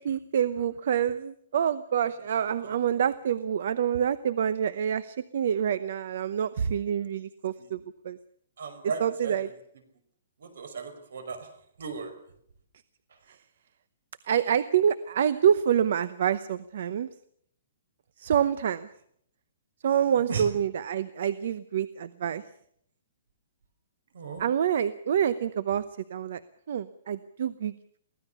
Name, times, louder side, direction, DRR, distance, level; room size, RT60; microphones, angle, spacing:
voice 1, 0.0-7.8 8.0-8.2 9.0-9.5 14.3-17.1 18.2-18.9 19.8-22.4 24.4-25.8 26.1-26.4 26.7-27.7, right 8 dB, 50° right, 16 dB, 0.8 m, -27 dB
voice 2, 8.6-9.5 10.4-11.5 11.8-12.2 19.9-20.5 24.1-24.5, right 5 dB, 70° right, 9 dB, 5.5 m, -37 dB
23.5 x 17.0 x 6.9 m, 0.68 s
hypercardioid pair, 175°, 0 cm